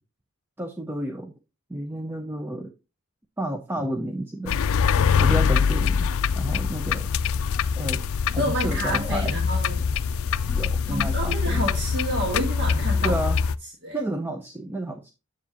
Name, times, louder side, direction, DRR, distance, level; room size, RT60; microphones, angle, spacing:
voice 1, 0.6-1.3 1.7-2.7 3.4-4.6 5.2-7.1 7.8-9.4 10.5-11.7 13.0-13.4 13.9-15.1, right 1 dB, 10° right, 5 dB, 0.5 m, -31 dB
sound 1, 4.5-13.6, left 6 dB, 65° left, 0.4 m, -24 dB
voice 2, 8.4-9.9 10.9-13.2 13.8-14.0, equal, 50° right, 0 dB, 1.5 m, -29 dB
7.4 x 7.1 x 2.8 m, 0.29 s
head